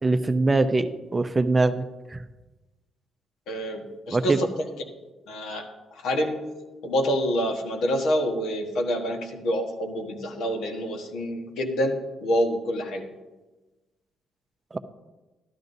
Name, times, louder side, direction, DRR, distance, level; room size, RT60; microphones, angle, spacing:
voice 1, 0.0-2.2 4.1-4.4 14.7-14.8, right 3 dB, 25° right, 9 dB, 0.6 m, -23 dB
voice 2, 3.5-4.5 5.3-5.6 5.9-6.4 6.8-13.1, equal, 80° left, 3 dB, 1.4 m, -27 dB
12.0 x 12.0 x 2.7 m, 1.2 s
cardioid pair, 90°, 0 cm